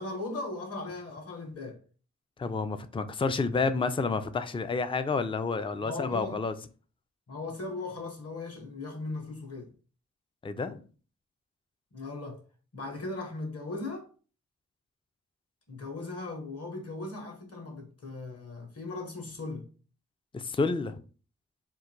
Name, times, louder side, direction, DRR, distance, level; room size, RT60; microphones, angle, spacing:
voice 1, 0.0-1.8 5.8-6.4 7.3-9.7 11.9-12.4 12.7-14.1 15.7-19.7, left 2 dB, 55° left, 1.5 m, -38 dB
voice 2, 2.4-6.5 10.4-10.8 20.3-20.9, left 4 dB, 20° left, 0.4 m, -29 dB
3.7 x 2.6 x 4.5 m
wide cardioid pair, 85°, 29 cm